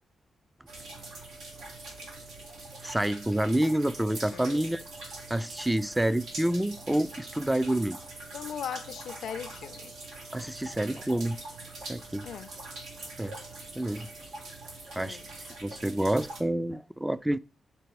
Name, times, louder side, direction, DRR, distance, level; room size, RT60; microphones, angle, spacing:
sound 1, 0.7-16.4, right 2 dB, 85° right, 1.4 m, -43 dB
voice 1, 2.8-4.8 5.3-8.0 10.3-11.4 11.9-12.3 13.2-13.4 13.8-14.1 15.0-15.2 15.6-17.4, right 1 dB, 10° right, 0.4 m, -28 dB
voice 2, 4.3-4.8 8.3-9.9 12.2-12.5 15.0-15.3, left 9 dB, 80° left, 0.4 m, -39 dB
6.8 x 4.2 x 4.7 m
cardioid pair, 60°, 0 cm